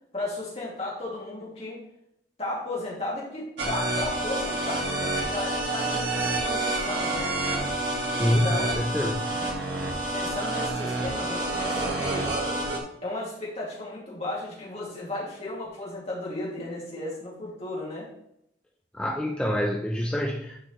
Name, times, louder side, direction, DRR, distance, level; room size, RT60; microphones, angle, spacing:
voice 1, 0.1-1.8 2.4-7.3 8.2-8.7 9.3-9.7 10.1-12.3 13.0-18.1, left 2 dB, 35° left, -5 dB, 2.2 m, -34 dB
sound 1, 3.6-12.8, right 2 dB, 70° right, 1.5 m, -28 dB
voice 2, 8.1-9.3 18.9-20.6, left 1 dB, 5° left, 0 dB, 0.4 m, -26 dB
9.8 x 4.8 x 3.1 m, 0.76 s
head